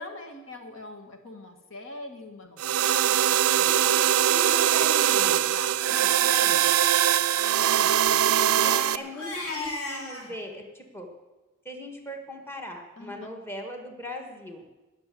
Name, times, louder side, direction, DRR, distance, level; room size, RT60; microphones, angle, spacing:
voice 1, 0.0-4.0 5.5-6.3 8.3-9.1 13.0-13.3, left 2 dB, 60° left, 5 dB, 1.8 m, -43 dB
sound 1, 2.6-9.0, right 11 dB, 80° right, 0.5 m, -22 dB
Crying sobbing, 3.4-3.7 4.3-4.4 4.7-4.8 5.2-5.4 5.8-6.1 7.2-10.3, left 2 dB, 80° left, 3.0 m, -38 dB
voice 2, 3.7-5.5 5.9-6.7 8.5-11.1 11.6-14.6, left 1 dB, 10° left, 3 dB, 1.5 m, -39 dB
19.0 x 6.8 x 7.7 m, 1.2 s
head